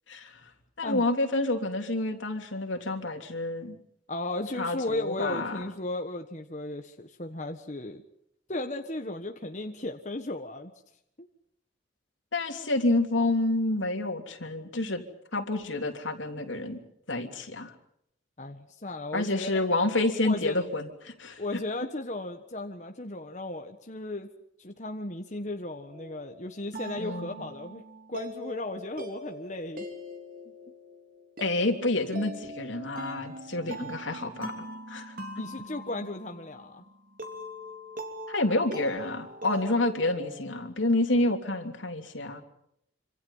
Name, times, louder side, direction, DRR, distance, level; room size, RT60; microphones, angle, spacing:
voice 1, 0.1-0.5 0.8-3.8 4.6-5.6 12.3-15.0 15.3-16.8 17.1-17.7 19.1-21.4 27.0-27.3 31.4-35.4 38.3-42.4, left 2 dB, 80° left, 4 dB, 3.3 m, -29 dB
voice 2, 4.1-8.0 8.5-10.7 11.2-11.3 18.4-19.7 20.2-20.6 21.4-24.3 24.6-27.8 28.1-29.9 35.4-36.8 41.1-41.3, left 2 dB, 40° left, 4 dB, 1.4 m, -35 dB
sound 1, 25.9-40.7, equal, 45° right, 3.4 m, -42 dB
26.5 x 26.5 x 5.6 m, 0.75 s
head